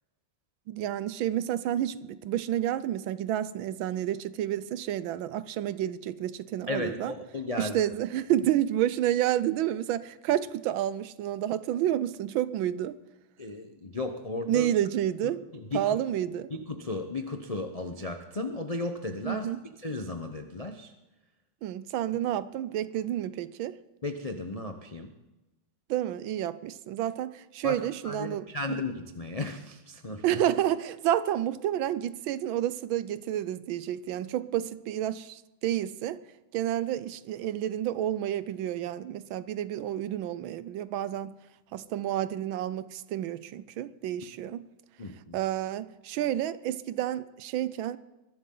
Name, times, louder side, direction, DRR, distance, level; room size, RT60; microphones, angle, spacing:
voice 1, 0.7-7.1 7.6-13.0 14.5-15.4 15.7-16.5 19.2-19.6 21.6-23.8 25.9-28.8 30.2-36.2 36.5-41.4 41.7-44.7 45.3-48.0, right 12 dB, 75° right, 1.4 m, -30 dB
voice 2, 6.7-7.8 13.4-14.7 15.5-16.0 16.5-19.5 19.8-20.9 24.0-25.1 27.6-30.4 45.0-45.4, left 2 dB, 80° left, 0.3 m, -35 dB
21.5 x 12.0 x 3.9 m
omnidirectional pair, 2.3 m